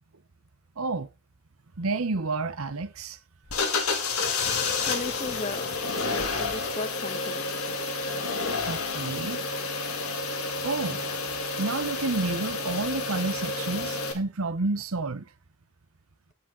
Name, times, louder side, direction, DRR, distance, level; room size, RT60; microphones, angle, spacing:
voice 1, 0.8-1.1 1.8-3.2 8.7-9.4 10.6-11.1 11.6-15.2, right 3 dB, 75° right, 0.9 m, -30 dB
sound 1, 3.5-14.1, left 3 dB, 80° left, 2.6 m, -30 dB
voice 2, 4.8-5.7 6.0-7.4, left 2 dB, 30° left, 1.2 m, -35 dB
15.5 x 6.4 x 3.8 m
head